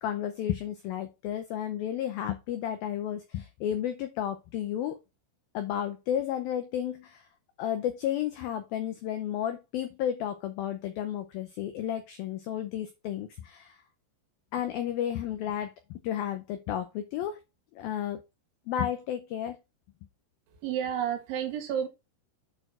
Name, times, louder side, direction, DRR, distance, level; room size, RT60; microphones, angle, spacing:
voice 1, 0.0-5.0 5.5-7.2 7.6-13.8 14.5-17.4 17.8-18.2 18.7-19.6, left 10 dB, 85° left, 2.1 m, -32 dB
voice 2, 20.6-21.9, right 9 dB, 85° right, 4.2 m, -30 dB
8.8 x 4.4 x 4.4 m
omnidirectional pair, 5.3 m